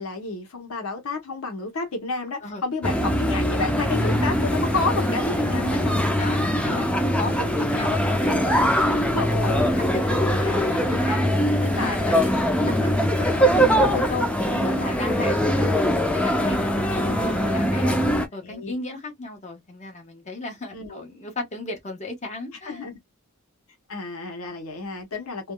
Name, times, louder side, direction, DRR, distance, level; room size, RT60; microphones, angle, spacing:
voice 1, 0.0-6.0 9.1-9.8 10.1-11.0 11.8-12.2 17.7-17.9 18.4-18.7 20.7-21.0 22.7-23.0 23.9-25.5, left 3 dB, 75° left, 0.9 m, -30 dB
sound 1, 2.8-18.3, equal, 5° left, 0.5 m, -22 dB
voice 2, 6.2-9.0 9.4-12.3 12.7-15.8 16.2-18.0 18.3-22.8, left 3 dB, 30° left, 1.3 m, -35 dB
3.4 x 2.2 x 2.3 m
head